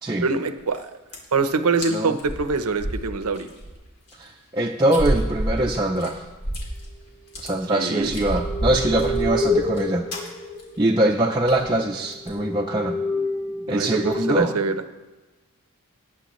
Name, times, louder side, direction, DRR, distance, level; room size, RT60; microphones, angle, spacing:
voice 1, 0.2-0.9 1.3-3.5 7.7-8.1 13.7-14.8, right 4 dB, 80° right, 10 dB, 0.8 m, -24 dB
sound 1, 0.6-0.8 1.1-1.4 1.8-1.9 2.2-3.7 4.1-4.2 4.9-6.9 7.2-7.5 8.0-9.8 10.1-10.3 10.6-10.8 11.0-11.1 11.5-11.7 12.1-12.4, right 1 dB, 85° left, 2.9 m, -29 dB
voice 2, 4.2-6.3 7.4-10.1 10.8-13.0 13.7-14.5, right 1 dB, 20° right, -1 dB, 0.5 m, -23 dB
sound 2, 7.6-11.2 11.8-11.9 12.3-14.4, left 1 dB, 35° left, 3.6 m, -28 dB
19.0 x 8.4 x 3.1 m, 1.2 s
head